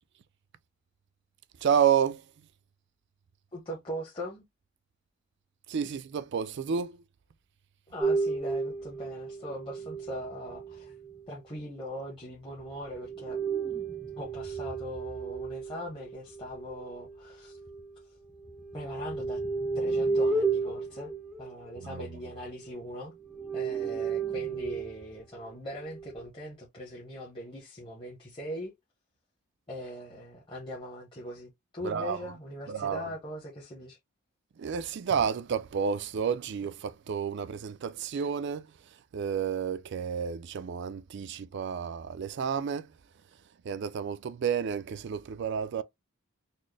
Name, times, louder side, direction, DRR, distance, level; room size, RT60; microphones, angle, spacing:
voice 1, 1.6-2.5 5.7-7.0 21.8-22.1 31.8-32.3 32.7-33.1 34.6-43.0 43.6-45.8, right 7 dB, 50° right, 0.3 m, -30 dB
voice 2, 3.5-4.4 7.9-10.9 11.3-13.4 14.2-17.6 18.0-18.2 18.7-19.4 19.7-21.1 21.4-23.1 23.5-28.7 29.7-34.0, equal, 20° left, 0.9 m, -40 dB
sound 1, 8.0-11.2 12.9-18.0 18.4-22.8 23.2-25.0 25.8-26.3, right 4 dB, ahead, 0.6 m, -33 dB
4.1 x 2.0 x 3.3 m
head